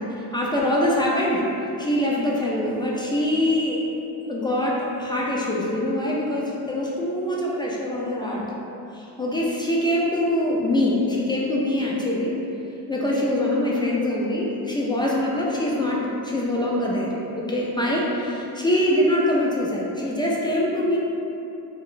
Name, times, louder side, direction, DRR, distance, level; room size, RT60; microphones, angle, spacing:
voice 1, 0.2-1.5 1.8-3.9 4.2-8.5 8.9-12.4 12.9-21.0, left 1 dB, 15° left, -4 dB, 0.3 m, -24 dB
2.4 x 2.1 x 3.7 m, 2.8 s
cardioid pair, 90°, 38 cm